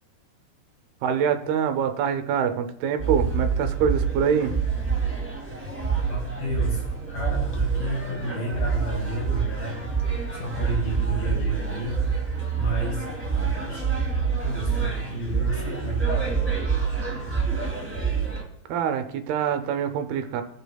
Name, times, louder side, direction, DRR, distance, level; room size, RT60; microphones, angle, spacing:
voice 1, 1.0-4.6 18.7-20.4, right 7 dB, 80° right, 8 dB, 2.7 m, -25 dB
sound 1, 3.0-18.4, right 5 dB, 15° right, 0.5 m, -27 dB
voice 2, 6.1-6.8 7.1-9.8 10.3-12.1 12.5-13.9 14.4-16.2, equal, 70° left, -2 dB, 4.7 m, -32 dB
19.0 x 6.9 x 2.3 m, 0.77 s
omnidirectional pair, 4.5 m